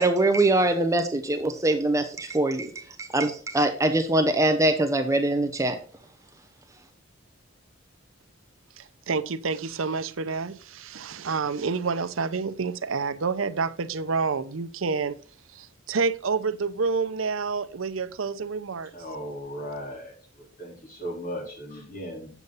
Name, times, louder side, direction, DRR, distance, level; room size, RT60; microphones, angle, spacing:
voice 1, 0.0-5.8, right 2 dB, 15° right, 7 dB, 0.8 m, -23 dB
voice 2, 8.8-15.2 15.5-18.9, right 4 dB, 85° right, 13 dB, 0.7 m, -28 dB
voice 3, 18.9-22.3, equal, 45° left, -1 dB, 3.9 m, -37 dB
8.2 x 7.1 x 4.0 m, 0.41 s
head